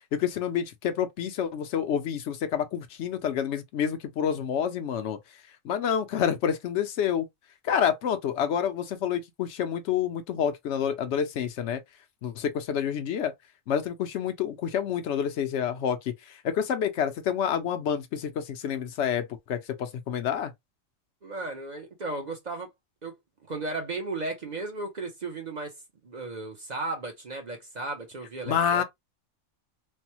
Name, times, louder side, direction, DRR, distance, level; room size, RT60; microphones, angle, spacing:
voice 1, 0.1-5.2 5.6-7.3 7.6-11.8 12.2-13.3 13.7-20.5 28.5-28.8, left 8 dB, 65° left, 0.8 m, -28 dB
voice 2, 21.2-22.7 23.0-23.2 23.5-25.7 26.0-28.8, right 2 dB, 45° right, 0.6 m, -35 dB
3.3 x 2.1 x 2.8 m
omnidirectional pair, 1.4 m